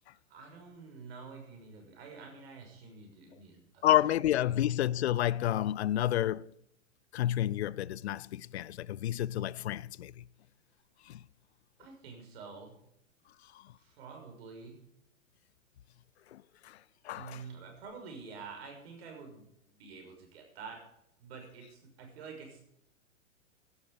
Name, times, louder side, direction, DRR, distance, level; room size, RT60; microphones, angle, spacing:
voice 1, 0.3-3.9 11.8-12.7 13.8-14.8 17.1-19.5 19.8-20.8 21.2-22.6, right 5 dB, 50° right, 6.0 m, -48 dB
voice 2, 3.8-6.5 7.1-10.2 11.1-11.2 16.3-16.8 17.0-17.4, left 12 dB, 55° left, 0.6 m, -30 dB
16.5 x 12.0 x 5.1 m
figure-of-eight pair, 110°, 39 cm